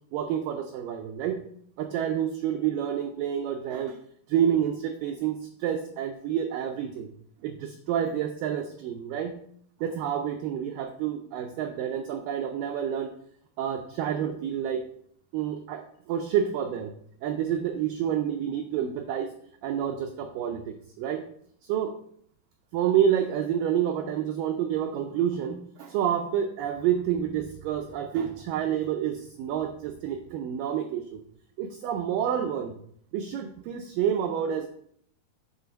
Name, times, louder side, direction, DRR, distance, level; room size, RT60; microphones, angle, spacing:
voice 1, 0.1-1.5 1.8-4.0 4.3-7.1 7.4-9.4 9.8-13.1 13.6-14.8 15.3-16.9 17.2-19.3 19.6-21.2 21.6-21.9 22.7-31.2 31.6-32.8 33.1-34.7, right 9 dB, 85° right, 5 dB, 1.9 m, -28 dB
8.1 x 4.0 x 5.0 m, 0.64 s
omnidirectional pair, 4.5 m